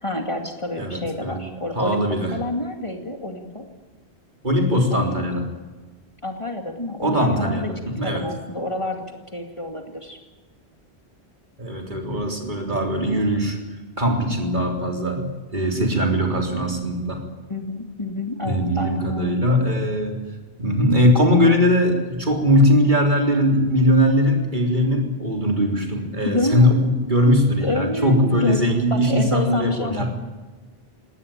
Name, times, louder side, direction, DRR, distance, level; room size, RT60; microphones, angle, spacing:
voice 1, 0.0-2.0 2.3-3.7 4.9-5.1 6.2-7.7 8.0-9.0 9.3-10.2 17.5-19.4 26.2-26.7 27.6-28.6 28.9-30.1, left 2 dB, 30° left, 3 dB, 2.4 m, -28 dB
voice 2, 0.8-1.5 1.7-2.3 4.4-5.5 7.0-8.2 11.6-13.6 14.0-17.2 18.4-20.2 20.6-30.1, equal, 45° right, 2 dB, 3.8 m, -20 dB
20.5 x 18.0 x 9.1 m, 1.3 s
omnidirectional pair, 1.1 m